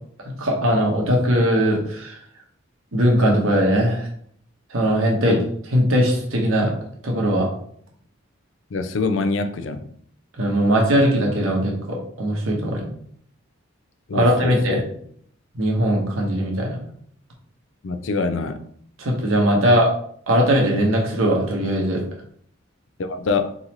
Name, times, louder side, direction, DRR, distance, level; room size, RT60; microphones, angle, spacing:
voice 1, 0.2-2.2 2.9-4.1 4.7-5.4 5.7-6.7 7.0-7.5 10.4-12.8 14.1-14.8 15.5-16.8 19.0-19.9 20.3-22.0, equal, 85° right, 1.2 m, -20 dB
voice 2, 8.7-9.9 14.1-14.8 17.8-18.6 23.0-23.6, left 4 dB, 65° left, 0.4 m, -25 dB
3.9 x 3.9 x 3.0 m
head